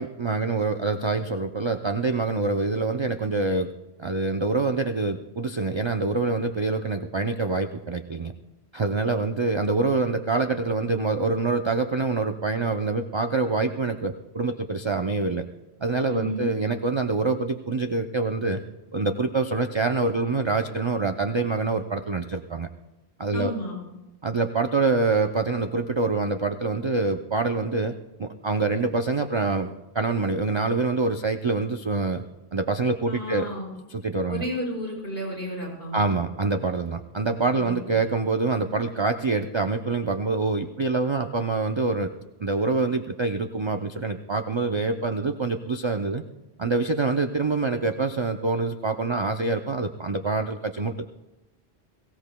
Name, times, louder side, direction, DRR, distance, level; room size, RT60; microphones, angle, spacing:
voice 1, 0.0-3.7 4.0-8.3 8.7-15.4 15.8-18.6 18.9-22.7 23.2-23.5 24.2-27.9 28.2-32.2 32.5-33.5 33.9-34.4 35.9-42.1 42.4-46.2 46.6-50.9, right 3 dB, 40° right, 6 dB, 0.4 m, -25 dB
voice 2, 16.1-16.4 23.3-23.8 33.1-33.7 34.3-36.1 37.5-37.8, equal, 65° left, -2 dB, 4.9 m, -32 dB
22.5 x 16.0 x 2.2 m, 0.99 s
omnidirectional pair, 1.1 m